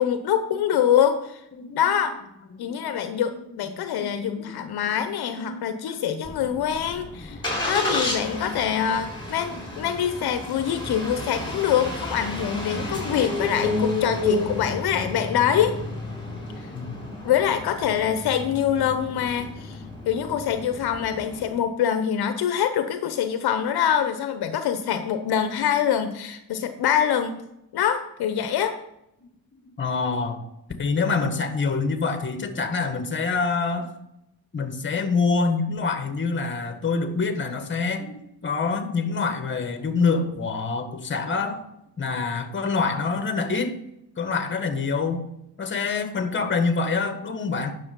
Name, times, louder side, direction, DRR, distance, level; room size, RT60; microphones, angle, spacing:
voice 1, 0.0-1.4 1.8-2.1 2.6-7.4 7.6-15.8 17.2-27.4 27.7-28.8, left 9 dB, 70° left, 9 dB, 0.9 m, -24 dB
voice 2, 2.5-2.9 3.9-4.7 5.3-6.0 6.3-6.6 7.3-7.4 8.7-8.9 9.5-9.8 10.1-10.2 16.7-17.0 29.8-30.4 30.8-33.9 34.5-41.6 42.0-43.7 44.2-45.2 45.6-47.7, left 4 dB, 30° left, 8 dB, 1.5 m, -26 dB
Engine starting, 6.2-21.5, left 2 dB, 10° left, 4.3 m, -31 dB
9.7 x 6.6 x 5.3 m, 0.83 s
cardioid pair, 105°, 39 cm